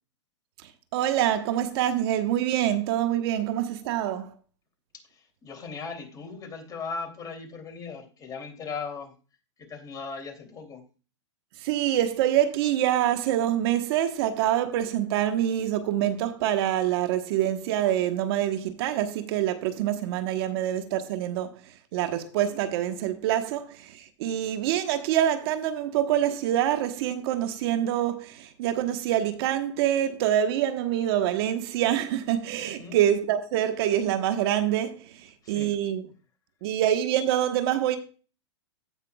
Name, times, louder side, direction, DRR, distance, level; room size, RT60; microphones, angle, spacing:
voice 1, 0.9-4.3 11.6-21.6 21.9-36.0 36.6-38.0, right 11 dB, 55° right, 1.2 m, -26 dB
voice 2, 4.9-9.1 9.6-10.9 32.8-33.0 35.4-35.7, left 5 dB, 25° left, 2.9 m, -38 dB
16.5 x 5.8 x 2.3 m
hypercardioid pair, 130°, 15 cm